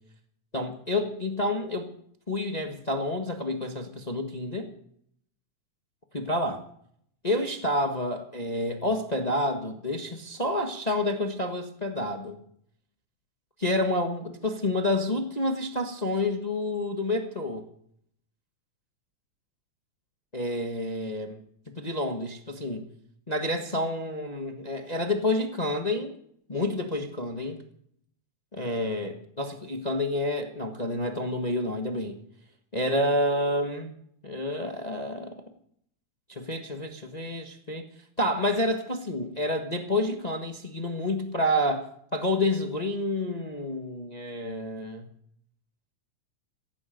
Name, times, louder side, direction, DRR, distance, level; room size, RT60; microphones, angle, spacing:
voice 1, 0.5-1.9 2.3-4.7 6.1-6.6 7.2-12.4 13.6-17.7 20.3-21.4 21.7-22.8 23.3-26.1 26.5-27.6 28.5-32.2 32.7-33.9 34.2-35.3 36.3-37.8 38.2-45.1, left 1 dB, 35° left, 4 dB, 0.6 m, -29 dB
16.5 x 15.5 x 5.3 m, 0.67 s
omnidirectional pair, 3.6 m